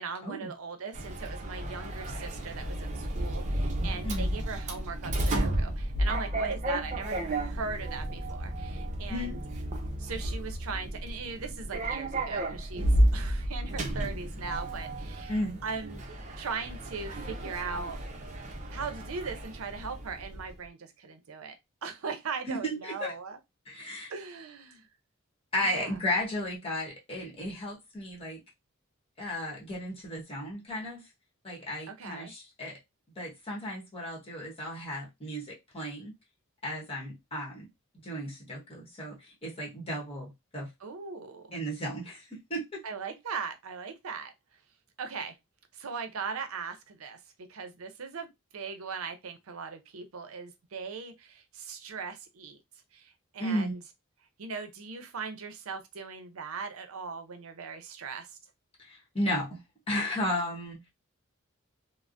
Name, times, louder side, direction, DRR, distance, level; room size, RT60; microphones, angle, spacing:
voice 1, 0.0-9.4 10.0-16.0 16.4-18.0 18.7-21.6 21.8-23.4 24.1-24.9 25.6-26.0 31.9-32.3 40.8-41.5 42.8-44.3 45.0-45.4 45.7-52.6 52.9-53.8 54.4-58.4, right 5 dB, 85° right, 0.6 m, -39 dB
Sliding door, 0.9-20.5, right 1 dB, 35° right, 0.6 m, -32 dB
voice 2, 4.0-4.3 9.1-9.4 15.3-15.6 22.5-23.1 23.7-24.1 25.5-28.4 29.2-31.0 31.4-32.8 33.2-36.1 36.6-37.7 38.0-40.7 41.5-42.8 53.4-53.7 58.8-59.6 59.9-60.8, left 1 dB, 30° left, 1.2 m, -34 dB
3.3 x 2.0 x 2.5 m
head